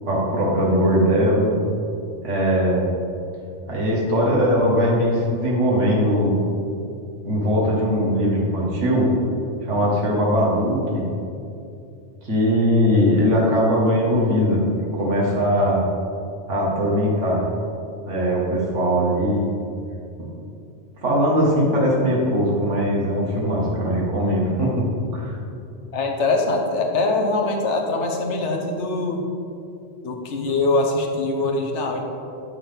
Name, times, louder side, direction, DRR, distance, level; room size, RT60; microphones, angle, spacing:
voice 1, 0.0-1.6 2.2-2.9 3.7-6.3 7.2-9.1 9.6-11.0 12.2-14.6 14.9-15.8 16.5-17.4 18.1-19.5 21.0-24.8 25.1-25.4, equal, 85° right, -4 dB, 1.8 m, -20 dB
voice 2, 25.9-29.2 30.0-32.0, left 2 dB, 75° left, 3 dB, 1.2 m, -23 dB
8.8 x 5.8 x 3.5 m, 2.6 s
omnidirectional pair, 1.2 m